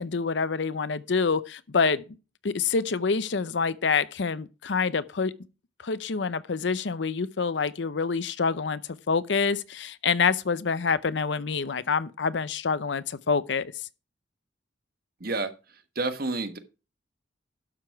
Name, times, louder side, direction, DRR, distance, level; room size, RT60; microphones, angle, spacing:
voice 1, 0.0-2.0 2.4-5.3 5.8-13.9, left 5 dB, 70° left, 0.7 m, -27 dB
voice 2, 15.2-15.5 15.9-16.6, right 3 dB, 55° right, 1.3 m, -29 dB
12.0 x 6.9 x 4.6 m
head